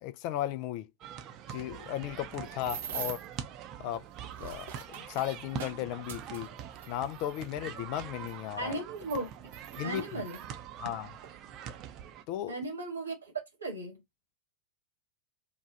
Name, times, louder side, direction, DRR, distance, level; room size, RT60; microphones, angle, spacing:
voice 1, 0.0-0.9 1.5-3.2 3.8-4.1 4.4-6.5 6.9-8.8 9.8-10.2 10.8-11.1 12.3-12.6, left 12 dB, 45° left, 0.4 m, -35 dB
sound 1, 1.0-12.2, right 9 dB, 35° right, 0.6 m, -44 dB
sound 2, 2.0-3.4 4.1-7.4 8.3-8.4 9.0-10.4 11.2-11.4 11.7-12.0, right 8 dB, 60° right, 0.9 m, -43 dB
voice 2, 8.6-9.3 9.8-10.4 12.5-14.0, right 2 dB, 75° right, 1.4 m, -36 dB
3.0 x 2.3 x 3.8 m
figure-of-eight pair, 90°, 0 cm